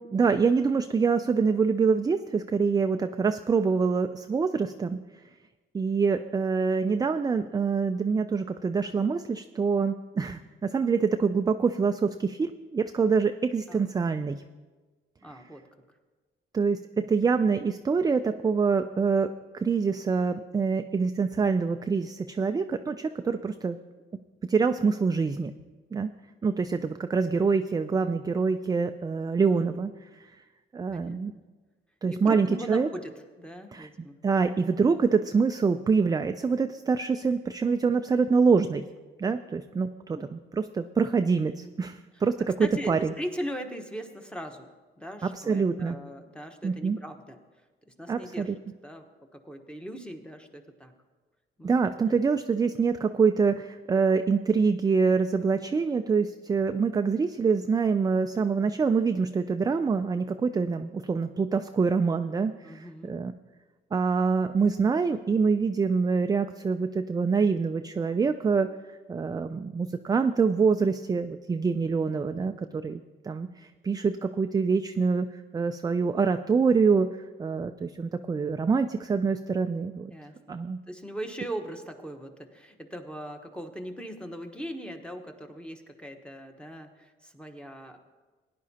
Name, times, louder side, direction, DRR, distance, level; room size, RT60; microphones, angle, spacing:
voice 1, 0.0-5.0 5.7-14.4 16.5-23.8 24.4-25.5 25.9-26.1 26.4-29.9 30.7-31.3 32.0-32.9 33.7-33.9 34.2-38.8 39.2-43.1 45.2-46.0 46.6-47.0 48.1-48.6 51.6-63.3 63.9-75.3 75.5-80.1 80.5-80.8, right 5 dB, 20° right, 8 dB, 0.3 m, -25 dB
voice 2, 15.2-15.6 17.0-17.1 30.9-31.2 32.1-33.1 33.4-34.2 40.1-40.3 41.6-41.7 42.1-42.2 42.6-44.7 45.0-47.4 48.0-48.5 48.8-49.0 49.4-50.9 51.6-51.7 52.1-52.2 62.6-63.2 72.3-72.8 80.1-80.6 80.9-88.0, equal, 5° left, 4 dB, 1.1 m, -39 dB
17.0 x 10.0 x 2.8 m, 1.3 s
cardioid pair, 90°, 20 cm